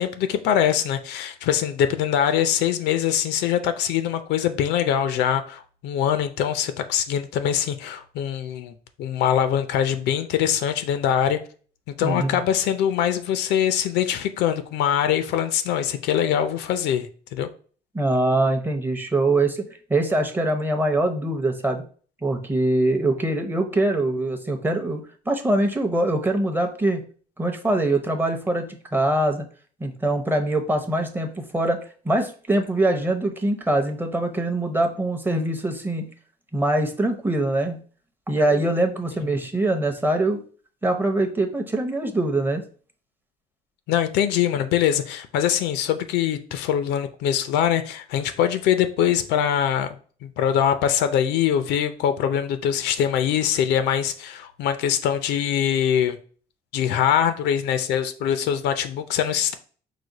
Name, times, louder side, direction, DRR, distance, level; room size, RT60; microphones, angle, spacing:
voice 1, 0.0-11.4 11.9-17.5 43.9-50.0 50.2-56.2 56.7-59.6, left 9 dB, 85° left, 0.5 m, -23 dB
voice 2, 12.0-12.4 17.9-21.8 22.2-27.0 27.4-29.4 29.8-31.8 32.0-36.1 36.5-37.8 38.3-40.4 40.8-42.6, right 2 dB, 10° right, 0.7 m, -23 dB
4.9 x 2.1 x 3.9 m
cardioid pair, 110°, 17 cm